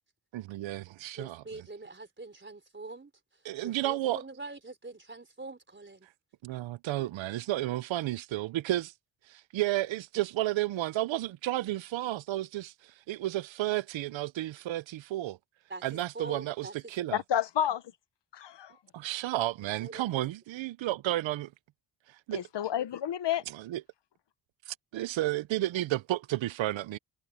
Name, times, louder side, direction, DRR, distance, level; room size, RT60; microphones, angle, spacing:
voice 1, 0.3-1.4 3.4-4.2 6.4-8.9 9.3-15.4 15.8-17.2 18.9-21.5 22.1-22.4 23.5-23.8 24.7-27.0, right 15 dB, 90° right, 0.6 m, -32 dB
voice 2, 1.2-6.1 15.7-17.0 19.6-20.2, right 3 dB, 25° right, 4.0 m, -44 dB
voice 3, 17.1-17.8 18.3-18.7 22.3-23.4, left 10 dB, 70° left, 1.1 m, -30 dB
cardioid pair, 85°, 44 cm